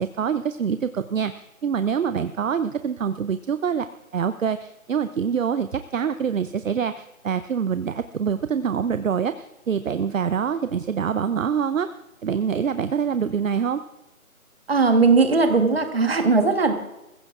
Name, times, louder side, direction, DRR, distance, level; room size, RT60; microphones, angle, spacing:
voice 1, 0.0-3.9 4.1-11.9 12.2-13.8, right 7 dB, 65° right, 11 dB, 0.6 m, -25 dB
voice 2, 14.7-16.7, right 4 dB, 45° right, 7 dB, 1.4 m, -18 dB
20.0 x 15.5 x 2.4 m, 0.94 s
hypercardioid pair, 175°, 42 cm